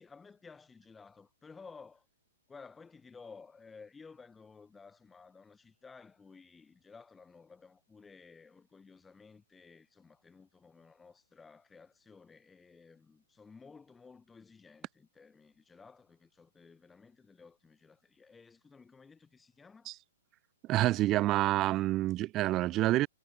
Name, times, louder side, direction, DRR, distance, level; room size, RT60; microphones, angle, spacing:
voice 1, 0.0-2.1 2.5-19.9, left 4 dB, 10° left, 3.4 m, -55 dB
voice 2, 20.7-23.1, right 16 dB, 30° right, 0.3 m, -28 dB
hypercardioid pair, 120°, 0 cm